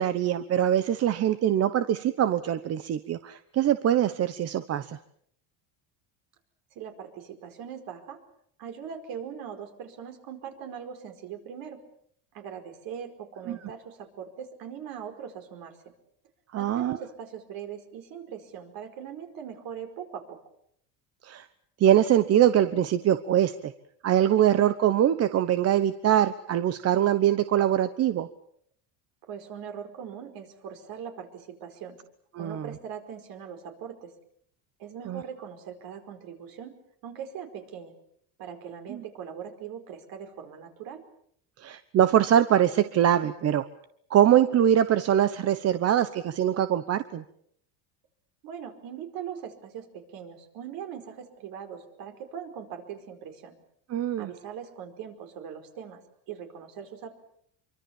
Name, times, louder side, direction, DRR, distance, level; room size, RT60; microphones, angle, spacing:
voice 1, 0.0-5.0 13.5-13.6 16.5-17.0 21.2-21.5 21.8-23.7 24.0-28.3 32.3-32.7 35.1-35.2 38.9-39.0 41.6-43.6 44.1-47.2 53.9-54.3, right 10 dB, 40° right, 12 dB, 1.1 m, -23 dB
voice 2, 6.7-8.2 8.6-11.8 12.3-15.8 16.5-20.4 29.2-32.0 32.4-34.1 34.8-36.7 37.0-37.9 38.4-41.0 48.4-53.5 54.2-56.0 56.3-57.2, right 8 dB, 60° right, 6 dB, 5.0 m, -41 dB
25.0 x 24.5 x 7.3 m, 0.67 s
cardioid pair, 130°, 39 cm